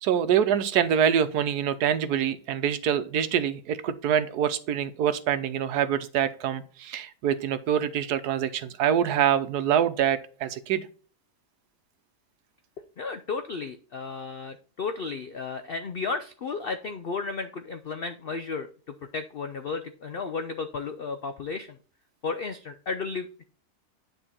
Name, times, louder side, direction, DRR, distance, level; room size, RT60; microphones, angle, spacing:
voice 1, 0.0-10.8, right 9 dB, 75° right, 12 dB, 1.3 m, -25 dB
voice 2, 13.0-18.7 19.1-21.8 22.2-23.5, left 4 dB, 75° left, 8 dB, 0.5 m, -33 dB
9.9 x 3.8 x 4.2 m, 0.41 s
omnidirectional pair, 1.7 m